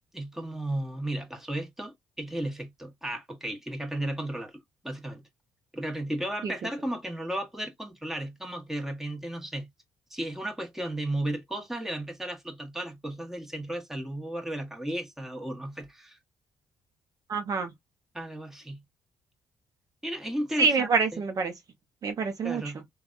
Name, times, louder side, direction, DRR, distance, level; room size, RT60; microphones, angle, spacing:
voice 1, 0.1-5.2 5.7-9.7 10.1-16.2 18.1-18.8 20.0-21.2 22.4-22.8, right 1 dB, 5° right, 1.1 m, -34 dB
voice 2, 17.3-17.7 20.6-21.5 22.0-22.6, right 4 dB, 50° right, 0.7 m, -26 dB
3.2 x 2.2 x 2.5 m
cardioid pair, 80°, 8 cm